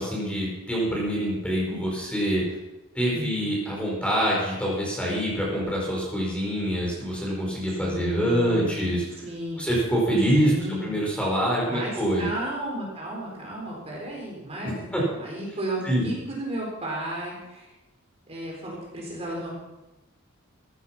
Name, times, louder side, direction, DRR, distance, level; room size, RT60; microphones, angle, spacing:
voice 1, 0.0-2.4 2.9-9.2 9.6-12.3 14.6-15.0 15.8-16.1, equal, 5° left, -3 dB, 4.5 m, -25 dB
voice 2, 7.7-9.6 10.3-10.9 11.7-17.7 18.3-19.6, right 1 dB, 30° right, -3 dB, 4.0 m, -34 dB
14.5 x 11.0 x 5.8 m, 1.0 s
head